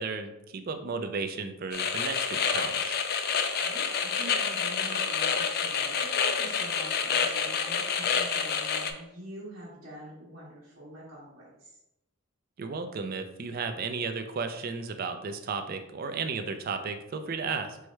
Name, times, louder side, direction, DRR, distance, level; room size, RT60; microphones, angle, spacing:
voice 1, 0.0-3.0 12.6-17.8, right 4 dB, 45° right, 7 dB, 0.4 m, -34 dB
sound 1, 1.7-8.9, left 6 dB, 45° left, 0.3 m, -28 dB
voice 2, 3.6-11.7, right 1 dB, 65° right, -10 dB, 1.3 m, -45 dB
4.7 x 2.1 x 4.5 m, 0.89 s
head